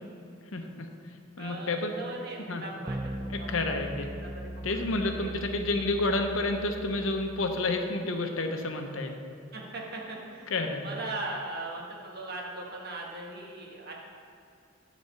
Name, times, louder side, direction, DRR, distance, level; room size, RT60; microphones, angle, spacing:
voice 1, 0.5-0.9 1.4-1.9 2.5-2.6 3.3-4.1 4.6-9.2 10.5-10.8, left 2 dB, 85° left, 5 dB, 0.9 m, -30 dB
voice 2, 1.4-3.0 3.4-5.5 9.5-14.0, right 2 dB, 50° right, -1 dB, 1.4 m, -40 dB
sound 1, 2.9-7.6, right 1 dB, 20° right, 0.3 m, -39 dB
9.7 x 4.2 x 6.9 m, 2.6 s
head